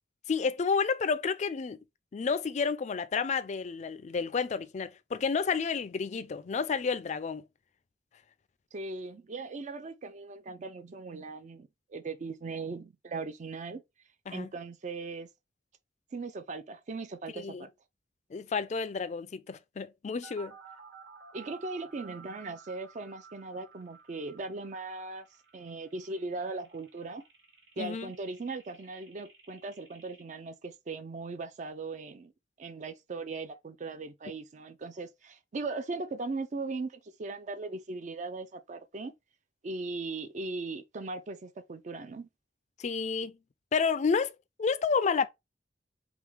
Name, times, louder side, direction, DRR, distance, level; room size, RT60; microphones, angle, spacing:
voice 1, 0.3-1.8 2.1-7.4 14.3-14.5 17.3-17.6 18.3-20.5 27.8-28.1 42.8-43.4 43.7-45.3, left 5 dB, 40° left, 0.4 m, -30 dB
voice 2, 8.7-13.8 14.3-15.3 16.1-17.7 21.3-25.3 25.5-27.2 27.8-32.3 32.6-39.1 39.6-42.3, right 3 dB, 45° right, 0.4 m, -39 dB
sound 1, 20.2-30.2, right 6 dB, 90° right, 1.2 m, -54 dB
3.6 x 3.1 x 3.3 m
head